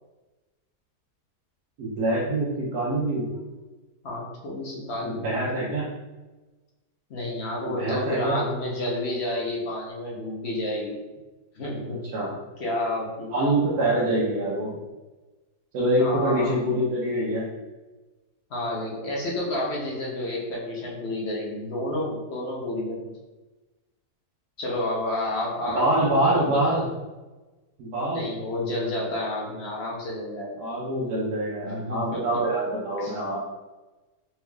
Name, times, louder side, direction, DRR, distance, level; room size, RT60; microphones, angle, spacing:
voice 1, 1.8-3.3 5.0-5.9 7.8-8.4 12.1-12.4 13.3-14.8 15.7-17.5 25.7-26.8 27.8-28.3 30.6-33.4, right 1 dB, 75° right, -7 dB, 1.3 m, -25 dB
voice 2, 4.0-5.3 7.1-11.0 11.5-12.0 12.6-13.3 14.0-14.1 16.0-16.6 18.5-23.2 24.6-26.8 28.0-30.6 31.6-32.4 33.0-33.2, left 1 dB, 50° left, -3 dB, 0.9 m, -30 dB
4.3 x 3.4 x 2.3 m, 1.2 s
omnidirectional pair, 1.7 m